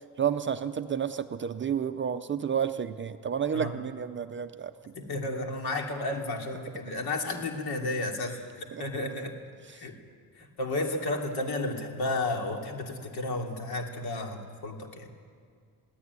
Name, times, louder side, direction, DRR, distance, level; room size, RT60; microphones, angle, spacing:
voice 1, 0.0-4.7 8.7-9.0 9.7-9.9, right 8 dB, 30° right, 9 dB, 0.5 m, -31 dB
voice 2, 5.0-9.3 9.7-9.9 10.4-15.1, left 2 dB, 70° left, 3 dB, 2.9 m, -32 dB
22.0 x 15.5 x 9.6 m, 2.1 s
cardioid pair, 175°, 39 cm